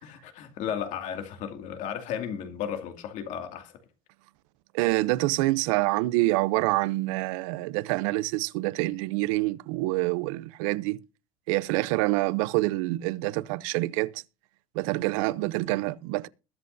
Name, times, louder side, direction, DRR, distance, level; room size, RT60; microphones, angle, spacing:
voice 1, 0.0-3.8, left 8 dB, 50° left, 2.4 m, -34 dB
voice 2, 4.7-11.0 11.5-14.2 14.7-16.3, right 20 dB, 80° right, 0.7 m, -26 dB
21.0 x 7.8 x 2.7 m
cardioid pair, 160°, 17 cm